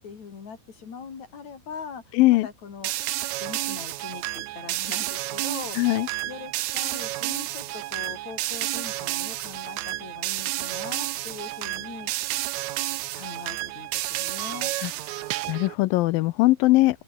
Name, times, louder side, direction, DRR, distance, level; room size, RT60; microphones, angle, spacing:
voice 1, 0.0-2.9 3.4-12.3 13.1-14.7, left 6 dB, 50° left, 4.3 m, -41 dB
voice 2, 2.1-2.5 5.8-6.1 14.8-14.9 15.5-17.0, left 19 dB, 85° left, 2.4 m, -20 dB
sound 1, 2.8-15.7, right 17 dB, 90° right, 1.6 m, -31 dB
open air
omnidirectional pair, 4.2 m